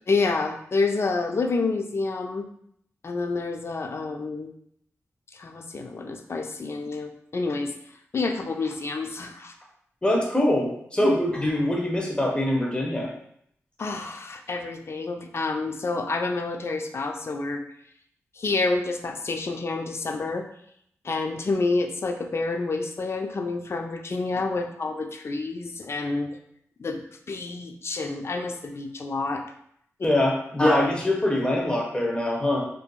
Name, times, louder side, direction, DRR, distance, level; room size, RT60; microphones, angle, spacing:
voice 1, 0.1-2.5 3.0-4.5 5.3-7.7 8.1-9.5 13.8-17.6 18.4-20.5 21.0-26.4 26.8-27.0 27.3-29.5, left 3 dB, 50° left, 5 dB, 0.4 m, -28 dB
voice 2, 10.0-13.1 30.0-32.6, left 1 dB, 20° left, -2 dB, 0.8 m, -23 dB
2.6 x 2.6 x 2.3 m, 0.69 s
cardioid pair, 45°, 6 cm